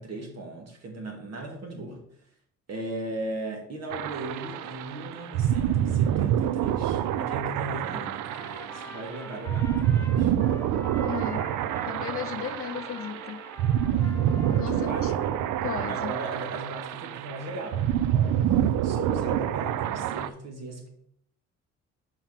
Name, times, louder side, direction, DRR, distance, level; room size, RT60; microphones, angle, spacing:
voice 1, 0.0-2.1 2.7-10.3 13.8-14.2 14.6-15.3 15.9-18.6 18.8-20.9, right 2 dB, 55° right, 2.1 m, -38 dB
sound 1, 3.9-20.3, right 10 dB, 85° right, 0.5 m, -27 dB
Trumpet, 8.2-15.8, left 2 dB, 10° left, 0.8 m, -45 dB
voice 2, 11.0-11.5 11.9-13.4 14.6-15.1 15.6-16.2, left 9 dB, 50° left, 0.5 m, -35 dB
5.9 x 4.5 x 5.7 m
cardioid pair, 90°, 30 cm